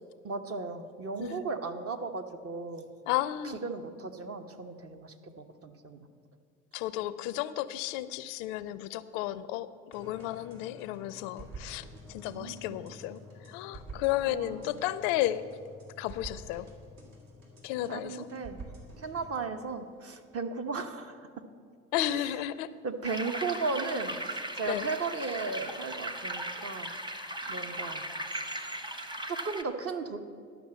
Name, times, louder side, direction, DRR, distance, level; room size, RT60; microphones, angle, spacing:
voice 1, 0.2-2.8 3.6-6.1 12.3-12.8 14.3-14.8 17.9-18.6 19.0-21.2 22.1-22.3 22.8-26.9 27.5-28.0 29.3-30.2, right 4 dB, 40° right, 6 dB, 1.0 m, -36 dB
voice 2, 3.1-3.6 6.7-13.2 13.5-15.4 16.0-16.7 17.6-18.3 21.9-22.7 24.7-24.9, left 14 dB, 70° left, 16 dB, 0.5 m, -33 dB
sound 1, 9.9-19.3, right 1 dB, 65° right, 3.2 m, -48 dB
sound 2, 23.0-29.6, right 1 dB, 10° right, 1.0 m, -37 dB
12.0 x 6.0 x 7.5 m, 2.2 s
hypercardioid pair, 55°, 37 cm